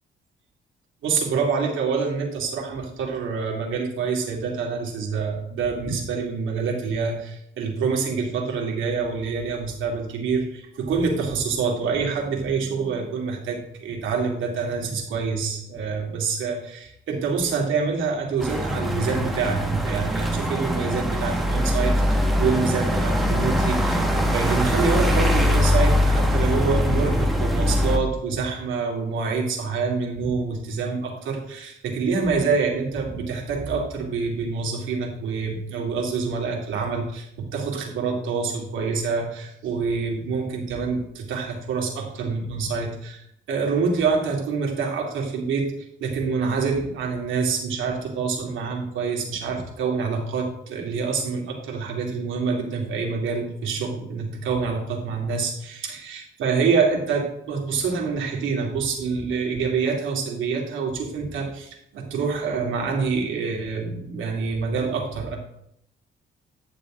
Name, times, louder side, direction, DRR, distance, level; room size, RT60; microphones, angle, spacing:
voice 1, 1.0-65.4, right 5 dB, 80° right, -1 dB, 2.6 m, -26 dB
sound 1, 18.4-28.0, left 1 dB, ahead, 1.5 m, -22 dB
11.0 x 7.0 x 3.8 m, 0.73 s
cardioid pair, 90°, 20 cm